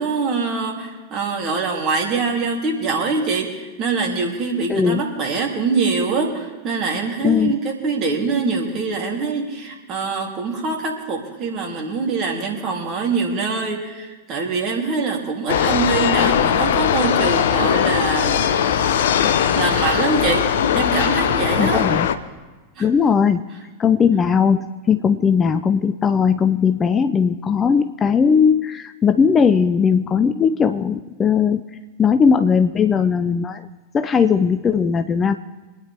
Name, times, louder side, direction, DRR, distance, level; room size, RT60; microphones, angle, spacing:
voice 1, 0.0-18.5 19.2-20.5 20.7-21.9 22.8-22.9, right 4 dB, 35° right, 0 dB, 3.0 m, -24 dB
voice 2, 4.7-5.0 7.2-7.6 21.6-22.1 22.8-23.4 23.8-31.6 32.0-33.7 33.9-35.4, left 6 dB, 20° left, 9 dB, 0.5 m, -18 dB
sound 1, 15.5-22.2, left 8 dB, 60° left, 0.8 m, -19 dB
25.5 x 9.9 x 3.5 m, 1.3 s
figure-of-eight pair, 90°, 0 cm